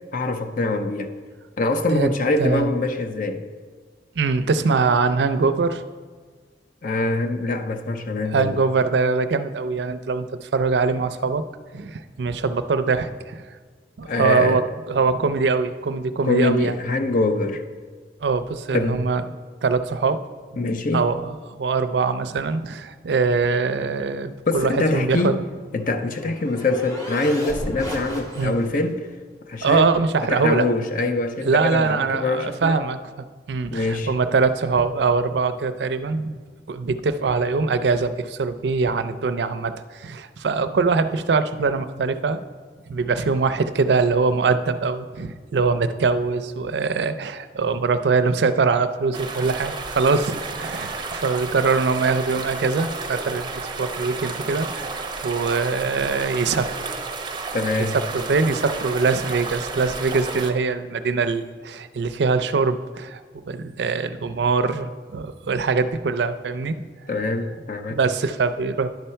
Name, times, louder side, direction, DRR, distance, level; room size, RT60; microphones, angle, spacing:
voice 1, 0.1-1.1 1.6-3.5 6.8-8.6 14.1-14.6 16.2-17.6 18.7-19.1 20.6-21.0 24.5-25.5 25.7-29.1 29.5-30.0 30.3-32.8 33.7-34.1 57.5-58.0 67.1-68.0, left 2 dB, 50° left, 0.5 m, -24 dB
voice 2, 2.4-2.7 4.2-5.8 8.3-11.4 11.7-13.4 14.0-14.6 14.9-16.7 18.2-19.2 19.6-20.2 20.9-25.4 28.4-28.5 29.6-30.6 31.4-33.0 33.5-36.4 36.7-42.4 42.9-56.9 58.1-66.8 67.9-68.9, right 4 dB, 70° right, 0.4 m, -23 dB
sound 1, 25.6-28.9, equal, 20° left, 1.7 m, -34 dB
sound 2, 49.1-60.5, right 3 dB, 25° right, 0.6 m, -32 dB
10.5 x 4.3 x 5.6 m
head